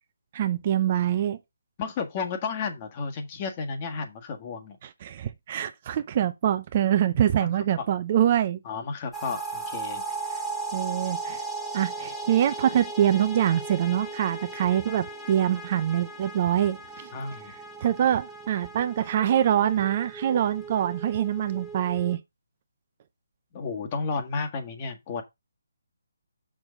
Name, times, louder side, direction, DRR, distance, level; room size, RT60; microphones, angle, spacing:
voice 1, 0.3-1.4 4.8-8.6 10.7-11.4 11.7-17.1 17.8-22.2, right 10 dB, 35° right, 0.7 m, -24 dB
voice 2, 1.8-4.8 7.8-7.9 8.6-10.0 17.1-17.5 23.5-25.2, left 4 dB, 30° left, 1.7 m, -32 dB
sound 1, 9.1-22.2, right 3 dB, 5° left, 1.8 m, -37 dB
6.3 x 6.3 x 3.7 m
figure-of-eight pair, 150°, 0 cm